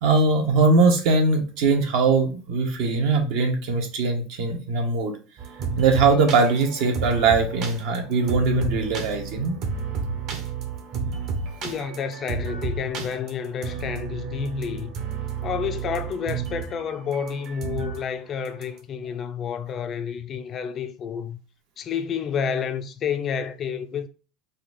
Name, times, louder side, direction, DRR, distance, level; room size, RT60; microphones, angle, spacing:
voice 1, 0.0-5.1 5.8-9.6, right 4 dB, 60° right, 1.3 m, -21 dB
sound 1, 5.4-18.0 18.5-18.8, right 5 dB, 45° right, 1.2 m, -31 dB
voice 2, 11.6-14.9 15.4-21.4 21.8-24.1, left 7 dB, 30° left, 0.4 m, -30 dB
4.3 x 2.6 x 4.1 m
supercardioid pair, 155°, 0 cm